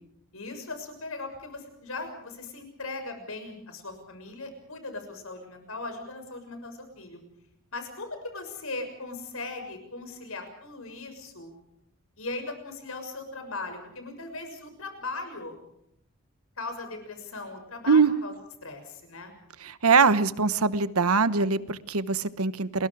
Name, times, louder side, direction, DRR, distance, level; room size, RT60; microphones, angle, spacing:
voice 1, 0.3-7.2 7.7-11.5 12.2-15.6 16.6-18.3 18.6-19.3, left 3 dB, 75° left, 6 dB, 6.6 m, -38 dB
voice 2, 19.6-22.9, right 5 dB, 85° right, 13 dB, 1.1 m, -22 dB
30.0 x 22.0 x 4.9 m, 0.76 s
head